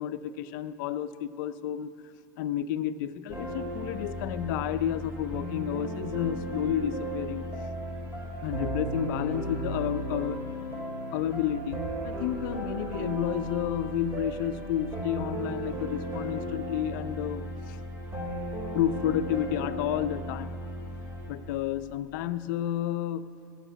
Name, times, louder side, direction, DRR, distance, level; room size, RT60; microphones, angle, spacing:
voice 1, 0.0-1.9 2.4-7.4 8.4-10.4 11.1-17.8 18.7-20.6 21.3-23.3, left 11 dB, 65° left, 13 dB, 0.5 m, -31 dB
sound 1, 3.3-21.3, right 1 dB, 20° right, 3.6 m, -35 dB
14.0 x 6.5 x 9.1 m, 2.6 s
supercardioid pair, 115°, 11 cm